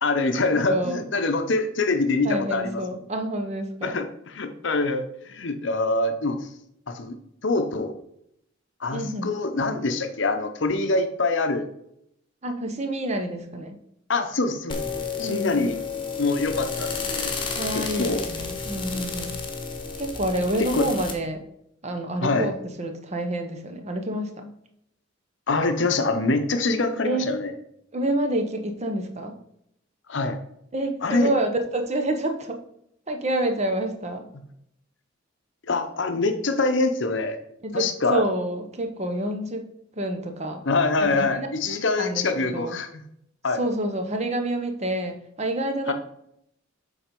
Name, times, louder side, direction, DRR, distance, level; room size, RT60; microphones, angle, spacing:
voice 1, 0.0-2.8 3.8-6.4 6.9-7.2 7.4-7.9 8.8-11.7 14.1-14.8 15.2-15.8 16.2-17.4 17.7-18.2 20.7-20.9 22.2-22.5 25.5-27.5 30.1-30.4 31.0-31.3 35.7-37.4 37.7-38.2 40.7-43.0 43.4-43.6 45.9-46.0, left 3 dB, 60° left, 8 dB, 0.7 m, -24 dB
voice 2, 0.7-1.1 2.2-4.0 8.9-9.3 12.4-13.8 15.2-15.6 17.6-19.4 19.9-21.4 21.8-24.5 27.0-27.3 27.9-29.3 30.7-32.6 33.1-34.3 37.6-39.6 40.0-40.6 41.2-41.5 42.0-42.2 42.5-42.8 43.6-45.9, right 1 dB, 35° right, 6 dB, 0.8 m, -28 dB
sound 1, 14.7-21.1, left 5 dB, 25° left, 1.1 m, -31 dB
7.4 x 4.1 x 5.2 m, 0.75 s
head